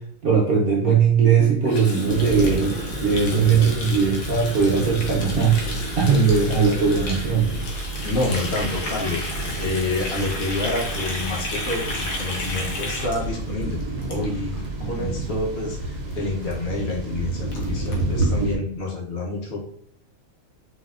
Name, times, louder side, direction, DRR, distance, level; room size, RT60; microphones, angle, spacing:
voice 1, 0.2-7.5 14.8-15.3, right 6 dB, 55° right, -2 dB, 0.6 m, -20 dB
Water tap faucet, 1.6-14.7 14.9-15.2 15.5-15.8 16.1-16.2 16.4-16.5 16.9-17.0 17.2-18.3, left 2 dB, 80° left, 1.1 m, -33 dB
sound 1, 2.1-18.6, right 2 dB, 75° right, 1.1 m, -30 dB
voice 2, 8.0-9.3 9.6-13.8 14.1-19.6, left 2 dB, 55° left, -2 dB, 0.9 m, -28 dB
4.2 x 2.3 x 2.3 m, 0.64 s
omnidirectional pair, 1.4 m